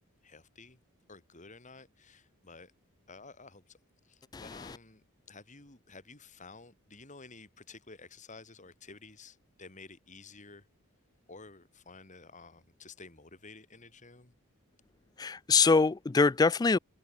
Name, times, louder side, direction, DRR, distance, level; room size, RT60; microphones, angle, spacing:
voice 1, 0.2-0.8 1.1-2.7 3.1-3.8 4.0-10.6 11.3-14.3, left 3 dB, 35° left, 3.1 m, -52 dB
voice 2, 15.2-16.8, left 4 dB, 20° left, 0.3 m, -24 dB
head